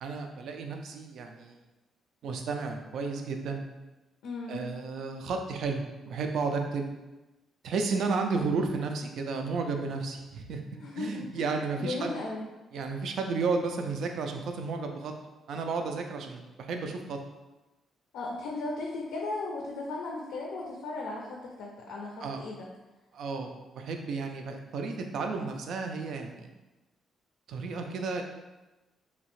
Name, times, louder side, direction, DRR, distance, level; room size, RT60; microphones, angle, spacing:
voice 1, 0.0-1.6 2.2-3.6 4.5-6.9 7.6-10.6 11.0-12.1 12.7-15.1 15.5-17.2 22.2-22.4 23.1-26.5 27.5-28.2, right 4 dB, 70° right, 4 dB, 0.3 m, -32 dB
voice 2, 4.2-4.7 10.7-11.2 11.8-12.4 18.1-22.7, left 3 dB, 85° left, -1 dB, 0.4 m, -36 dB
2.7 x 2.0 x 3.0 m, 1.1 s
cardioid pair, 90°, 0 cm